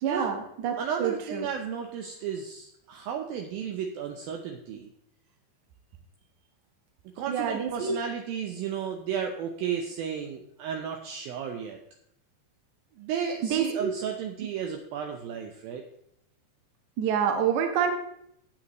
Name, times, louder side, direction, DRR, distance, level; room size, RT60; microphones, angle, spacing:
voice 1, 0.0-1.5 7.3-8.0 13.4-13.9 17.0-17.9, right 7 dB, 70° right, 5 dB, 1.8 m, -27 dB
voice 2, 0.8-4.9 7.2-11.8 13.0-15.8, right 7 dB, 85° right, 3 dB, 2.1 m, -33 dB
15.0 x 8.8 x 3.1 m, 0.75 s
omnidirectional pair, 5.3 m